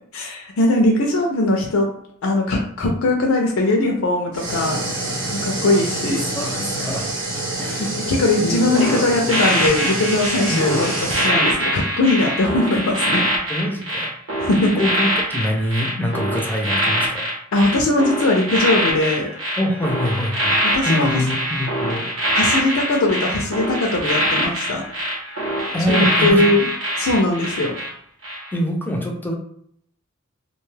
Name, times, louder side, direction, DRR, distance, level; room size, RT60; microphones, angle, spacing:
voice 1, 0.1-1.9 2.2-4.8 5.4-6.2 7.8-10.9 11.2-13.3 14.4-14.9 17.5-19.3 20.7-21.2 22.3-24.8 25.9-26.7 27.0-27.8, left 2 dB, 90° left, 0 dB, 0.5 m, -20 dB
sound 1, 4.3-11.3, right 2 dB, 65° right, 0.8 m, -27 dB
voice 2, 6.0-7.1 7.6-7.9 8.4-9.1 10.5-10.8 13.5-14.1 14.6-17.2 19.6-20.5 20.8-22.1 25.7-26.5 28.5-29.3, left 1 dB, 10° left, 1 dB, 0.4 m, -24 dB
sound 2, 8.7-27.9 28.2-28.5, equal, 90° right, 1.0 m, -23 dB
2.5 x 2.2 x 3.2 m, 0.66 s
head